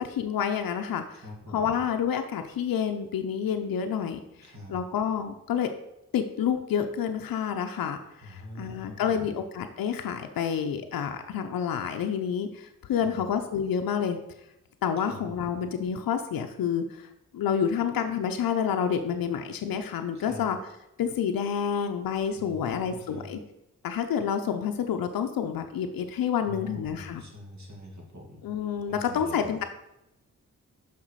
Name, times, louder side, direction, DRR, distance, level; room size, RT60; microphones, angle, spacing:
voice 1, 0.0-1.0 1.5-5.7 6.1-14.2 14.8-20.6 21.0-23.4 23.8-27.2 28.4-29.6, left 8 dB, 85° left, 5 dB, 0.6 m, -29 dB
voice 2, 1.2-1.7 4.4-4.8 8.2-9.4 13.0-13.2 15.1-15.4 20.1-20.5 22.3-23.3 26.4-28.4 28.9-29.5, left 1 dB, 55° right, 0 dB, 2.5 m, -43 dB
5.8 x 5.7 x 4.7 m, 0.90 s
cardioid pair, 45°, 34 cm